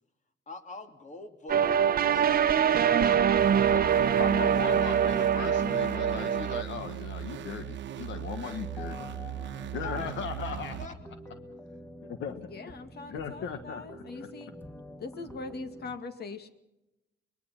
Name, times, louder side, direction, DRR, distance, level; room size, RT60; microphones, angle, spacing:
voice 1, 0.5-1.9 2.1-3.2 3.6-4.2 5.5-5.6 9.8-10.9, left 2 dB, 40° left, 6 dB, 2.8 m, -44 dB
sound 1, 1.5-6.6, right 8 dB, 50° right, 0.9 m, -24 dB
sound 2, 3.4-10.9, right 11 dB, 75° right, 1.0 m, -38 dB
voice 2, 4.2-9.1 9.7-10.7 12.0-12.5 13.1-14.3, left 7 dB, 85° left, 9 dB, 1.4 m, -38 dB
sound 3, 8.4-15.9, left 1 dB, 10° left, 2.0 m, -47 dB
voice 3, 12.5-14.5 15.0-16.5, left 3 dB, 60° left, 9 dB, 2.1 m, -41 dB
23.0 x 21.0 x 5.8 m, 0.95 s
cardioid pair, 90°, 19 cm